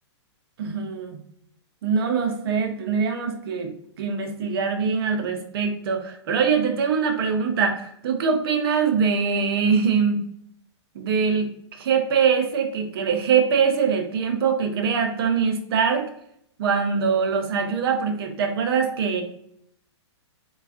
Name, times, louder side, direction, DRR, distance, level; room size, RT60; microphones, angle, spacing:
voice 1, 0.6-1.2 1.8-3.7 4.0-10.2 10.9-11.5 11.8-16.1 16.6-19.2, right 6 dB, 55° right, 4 dB, 0.6 m, -23 dB
3.3 x 2.3 x 2.3 m, 0.71 s
hypercardioid pair, 150°, 15 cm